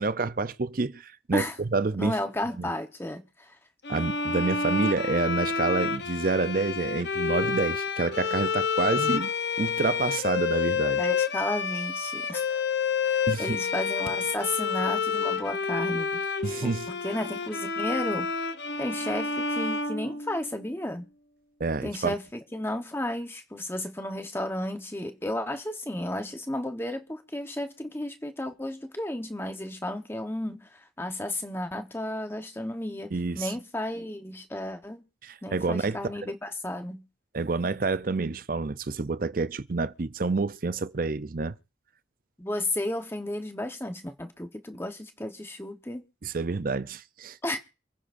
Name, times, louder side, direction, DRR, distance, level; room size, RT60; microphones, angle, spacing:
voice 1, 0.0-2.2 2.6-2.7 3.9-11.0 13.3-13.6 16.4-16.9 21.6-22.1 33.1-33.5 35.2-36.0 37.3-41.6 46.2-47.4, right 3 dB, 45° right, 0.6 m, -28 dB
voice 2, 2.0-3.6 11.0-12.6 13.0-16.3 16.6-18.3 18.8-21.1 21.8-35.0 35.4-37.0 42.4-46.0 47.4-47.6, left 1 dB, 10° left, 1.1 m, -33 dB
sound 1, 3.8-20.7, left 5 dB, 65° left, 0.9 m, -29 dB
28.0 x 9.9 x 2.6 m
head